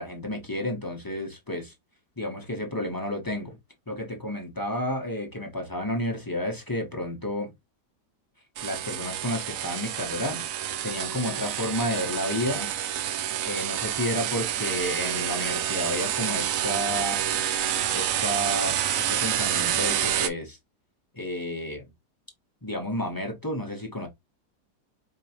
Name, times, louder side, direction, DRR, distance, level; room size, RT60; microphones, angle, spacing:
voice 1, 0.0-1.7 2.2-3.6 3.9-7.5 8.6-10.4 10.8-12.7 13.4-17.2 17.9-20.6 21.1-21.8 22.6-24.1, left 1 dB, 15° left, 0.9 m, -31 dB
sound 1, 8.6-20.3, right 10 dB, 65° right, 0.9 m, -28 dB
4.8 x 3.0 x 2.8 m
omnidirectional pair, 1.8 m